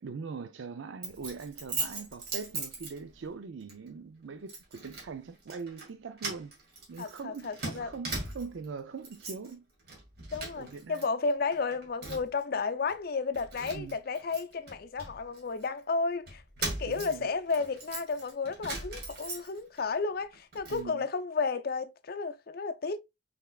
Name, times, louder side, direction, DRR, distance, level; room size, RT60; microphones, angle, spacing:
voice 1, 0.0-6.5 6.9-9.6 10.5-11.0 13.7-14.0 16.8-17.3 20.7-21.0, right 5 dB, 80° right, 0.4 m, -42 dB
Keys jangling, 1.0-3.3 3.7-3.9 4.5-5.1 5.4-5.9 6.2-8.7 9.0-9.5 9.8-11.0 11.3-12.4 12.9-13.0 13.3-15.7 16.3-19.8 20.2-20.8, right 3 dB, 55° right, 2.1 m, -39 dB
voice 2, 7.0-7.9 10.3-23.0, left 4 dB, 50° left, 0.5 m, -32 dB
5.6 x 3.5 x 2.3 m
head